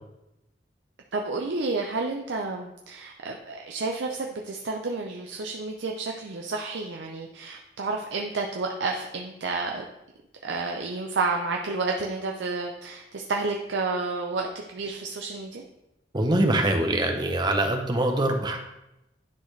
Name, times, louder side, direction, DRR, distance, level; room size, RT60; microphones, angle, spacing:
voice 1, 1.1-9.8 10.4-15.6, right 3 dB, 85° right, 1 dB, 0.6 m, -30 dB
voice 2, 16.1-18.6, right 1 dB, 25° right, 3 dB, 0.7 m, -23 dB
10.5 x 4.0 x 3.2 m, 0.91 s
head